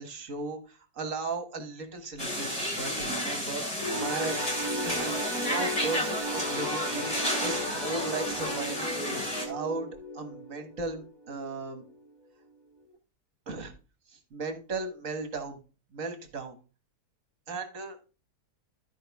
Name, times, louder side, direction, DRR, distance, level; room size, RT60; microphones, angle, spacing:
voice 1, 0.0-4.4 4.8-7.1 7.4-9.9 10.1-11.8 13.5-13.7 14.1-15.6 15.9-16.6 17.5-18.0, right 3 dB, 55° right, 7 dB, 1.8 m, -36 dB
sound 1, 2.2-9.5, left 1 dB, 20° left, 2.7 m, -32 dB
sound 2, 3.8-11.5 11.9-12.1 12.9-13.0, equal, 15° right, 1.1 m, -35 dB
13.0 x 4.9 x 3.5 m, 0.33 s
omnidirectional pair, 1.7 m